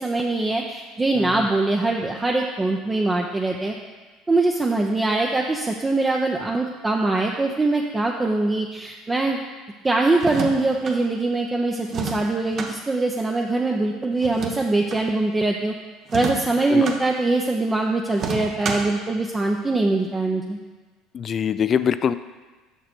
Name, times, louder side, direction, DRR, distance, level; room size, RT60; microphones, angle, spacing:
voice 1, 0.0-3.7 4.3-9.4 9.8-15.8 16.1-20.6, right 2 dB, 20° right, 0 dB, 0.7 m, -22 dB
voice 2, 1.1-1.5 16.7-16.9 21.1-22.1, left 8 dB, 40° left, 13 dB, 0.4 m, -23 dB
sound 1, 10.1-11.0 11.9-12.7 14.2-15.0 16.0-17.0 18.1-19.0, right 4 dB, 50° right, 1.1 m, -30 dB
6.8 x 6.2 x 4.4 m, 1.3 s
hypercardioid pair, 75°, 0 cm